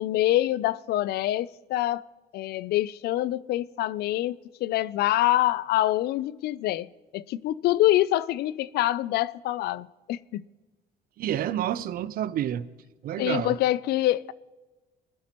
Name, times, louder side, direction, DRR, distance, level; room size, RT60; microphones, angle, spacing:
voice 1, 0.0-2.1 2.3-10.4 13.2-14.3, left 15 dB, 70° left, 0.4 m, -25 dB
voice 2, 11.2-12.7 13.0-13.6, right 11 dB, 60° right, 0.6 m, -29 dB
20.5 x 11.5 x 3.0 m
cardioid pair, 110°, 17 cm